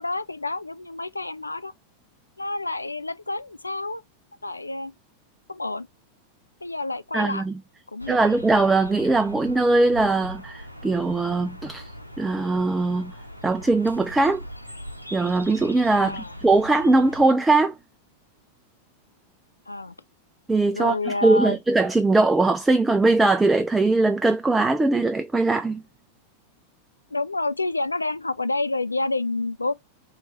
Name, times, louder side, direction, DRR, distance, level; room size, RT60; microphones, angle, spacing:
voice 1, 0.0-1.7 2.4-4.0 4.4-4.9 5.5-5.9 6.6-7.4 7.9-8.3 16.0-16.3 19.7-19.9 20.7-21.6 27.1-29.7, left 2 dB, 80° left, 0.3 m, -28 dB
voice 2, 7.1-7.5 8.1-11.9 12.2-13.1 13.4-14.4 15.1-17.8 20.5-25.8, right 3 dB, 10° right, 0.4 m, -21 dB
sound 1, 8.0-17.3, equal, 90° right, 0.6 m, -41 dB
3.2 x 3.2 x 4.0 m
figure-of-eight pair, 90°, 0 cm